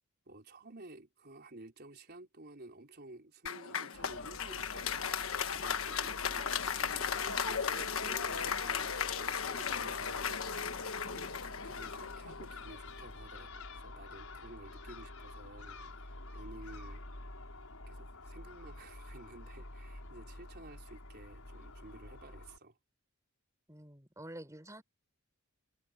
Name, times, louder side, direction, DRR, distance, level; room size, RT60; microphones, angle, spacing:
voice 1, 0.3-5.0 5.5-11.3 11.6-17.0 17.9-22.8, right 2 dB, 50° right, 4.4 m, -53 dB
Applause, 3.5-12.8, left 7 dB, 70° left, 1.3 m, -36 dB
Crow / Gull seagull, 3.9-22.6, left 2 dB, 85° left, 5.9 m, -48 dB
voice 2, 23.7-24.8, right 1 dB, 15° right, 6.1 m, -48 dB
head